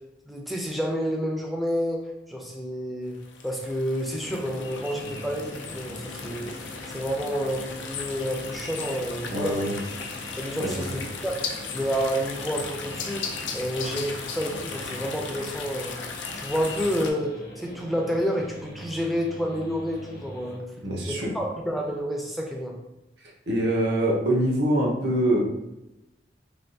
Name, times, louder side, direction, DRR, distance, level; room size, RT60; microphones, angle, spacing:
voice 1, 0.3-3.2 3.4-9.8 10.4-11.3 11.7-13.2 13.5-16.0 16.3-20.6 21.1-22.8, equal, ahead, -1 dB, 0.5 m, -29 dB
sound 1, 3.2-17.1, left 5 dB, 85° left, 0.4 m, -36 dB
sound 2, 4.2-20.6, left 1 dB, 55° left, 0.8 m, -43 dB
voice 2, 9.3-9.8 10.6-10.8 20.8-21.3 23.5-25.4, right 1 dB, 65° right, -2 dB, 0.7 m, -24 dB
3.3 x 2.3 x 2.6 m, 0.94 s
head